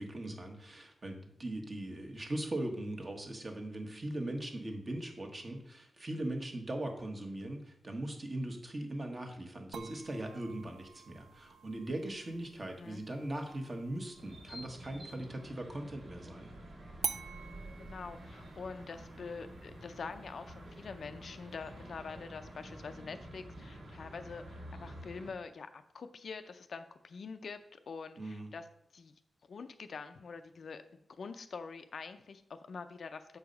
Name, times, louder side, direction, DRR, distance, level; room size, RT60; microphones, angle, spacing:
voice 1, 0.0-16.5 28.2-28.5, right 1 dB, 35° right, 3 dB, 1.3 m, -40 dB
sound 1, 9.7-15.3 17.0-22.0, right 6 dB, 85° right, 0.4 m, -47 dB
voice 2, 12.6-13.0 17.8-28.6 28.9-29.1 29.5-30.8 31.2-33.4, left 5 dB, 65° left, 9 dB, 0.5 m, -45 dB
sound 2, 14.2-25.3, right 1 dB, 65° right, 1.7 m, -49 dB
6.8 x 4.8 x 5.2 m, 0.75 s
wide cardioid pair, 105°, 0 cm